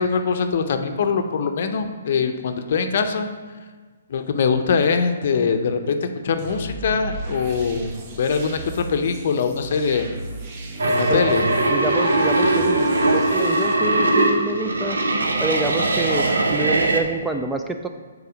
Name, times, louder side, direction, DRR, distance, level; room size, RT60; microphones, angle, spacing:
voice 1, 0.0-3.3 4.1-7.9 8.2-10.1 10.9-11.4, left 5 dB, 55° left, 7 dB, 0.6 m, -22 dB
sound 1, 6.4-13.8, right 2 dB, 40° right, 1.0 m, -36 dB
sound 2, 10.8-17.0, right 2 dB, 85° right, 0.8 m, -20 dB
voice 2, 11.7-15.0 15.4-17.9, right 2 dB, 5° right, 5 dB, 0.3 m, -27 dB
6.8 x 4.2 x 5.0 m, 1.4 s
hypercardioid pair, 140°, 0 cm